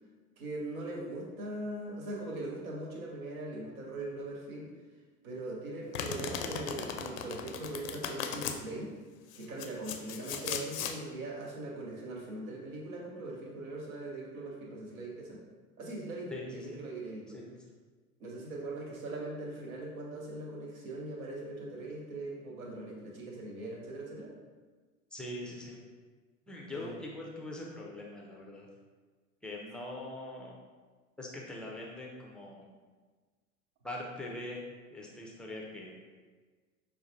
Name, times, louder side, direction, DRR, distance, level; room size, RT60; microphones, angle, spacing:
voice 1, 0.4-4.7 5.2-9.0 9.3-15.4 15.8-17.4 18.2-24.3 26.7-27.0, right 2 dB, 70° right, -1 dB, 1.0 m, -41 dB
Domestic sounds home sounds, 5.9-8.6 9.3-11.0, left 7 dB, 65° left, 0.5 m, -37 dB
voice 2, 16.3-16.8 17.3-17.5 25.1-25.8 26.5-28.7 29.4-30.6 31.2-32.7 33.8-34.6 34.9-36.0, left 1 dB, ahead, -3 dB, 0.4 m, -42 dB
5.5 x 2.2 x 2.7 m, 1.4 s
figure-of-eight pair, 75°, 44 cm